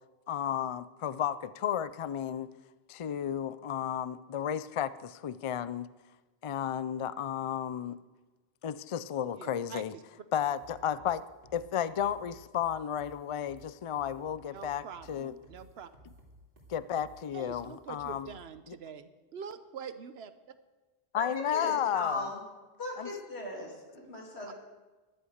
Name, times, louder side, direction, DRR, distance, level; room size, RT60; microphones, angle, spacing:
voice 1, 0.3-2.5 2.9-5.9 6.4-8.0 8.6-9.9 10.3-11.2 11.5-15.3 16.7-18.3 18.7-18.8 21.1-22.3 23.0-23.1, left 9 dB, 50° left, 16 dB, 0.4 m, -33 dB
voice 2, 9.3-10.0 14.5-15.9 16.9-17.1 17.3-20.3 24.5-24.6, right 7 dB, 75° right, 12 dB, 1.1 m, -45 dB
sound 1, 10.6-18.5, right 2 dB, 55° right, 2.7 m, -56 dB
voice 3, 21.1-22.4 22.8-24.5, left 1 dB, 90° left, -1 dB, 3.4 m, -38 dB
13.5 x 11.5 x 6.4 m, 1.2 s
omnidirectional pair, 1.1 m